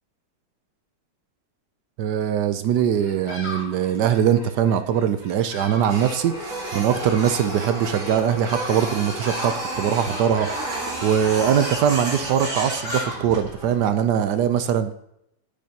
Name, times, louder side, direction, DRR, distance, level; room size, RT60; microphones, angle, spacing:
voice 1, 2.0-15.0, right 9 dB, 75° right, 10 dB, 1.2 m, -22 dB
Bird vocalization bird call bird song, 2.9-13.9, left 1 dB, 35° left, 2.1 m, -39 dB
Printer, 5.9-13.7, right 1 dB, 45° right, 2.3 m, -31 dB
12.0 x 8.5 x 2.9 m, 0.76 s
omnidirectional pair, 1.9 m